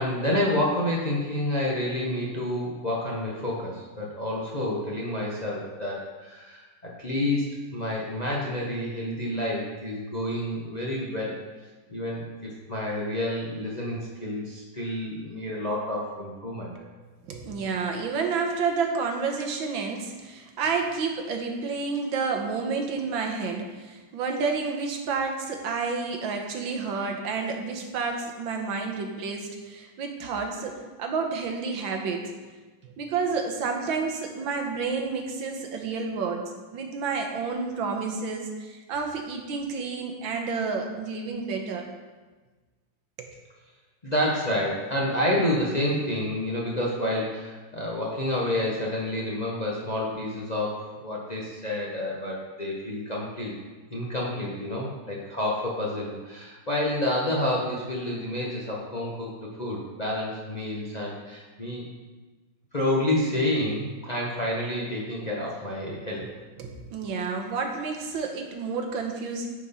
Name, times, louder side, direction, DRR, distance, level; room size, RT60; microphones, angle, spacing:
voice 1, 0.0-7.5 7.7-11.4 11.9-16.7 44.0-53.6 53.9-61.8 62.7-66.2, left 1 dB, 30° left, -4 dB, 0.8 m, -29 dB
voice 2, 17.3-32.3 33.0-36.4 36.7-41.9 43.2-43.3 66.2-66.3 66.6-69.5, right 4 dB, 90° right, 3 dB, 1.8 m, -30 dB
9.6 x 5.4 x 4.2 m, 1.3 s
omnidirectional pair, 2.1 m